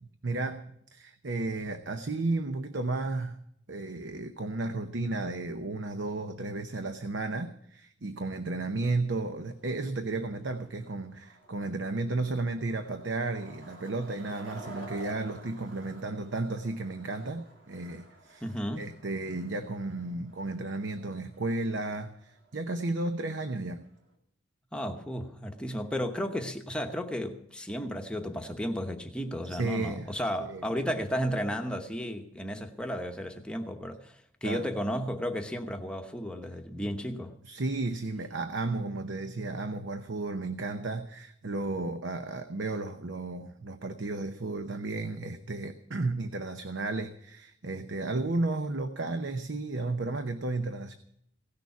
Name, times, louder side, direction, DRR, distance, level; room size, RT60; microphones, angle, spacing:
voice 1, 0.0-3.4 3.7-18.4 18.7-23.9 29.5-30.1 30.4-30.6 34.4-34.7 37.4-50.9, right 2 dB, 70° right, 0.8 m, -33 dB
Skateboard, 9.0-24.1, right 1 dB, 85° right, 3.0 m, -52 dB
voice 2, 18.4-18.9 24.7-37.3, equal, 5° left, 0.9 m, -33 dB
17.0 x 6.8 x 9.4 m
head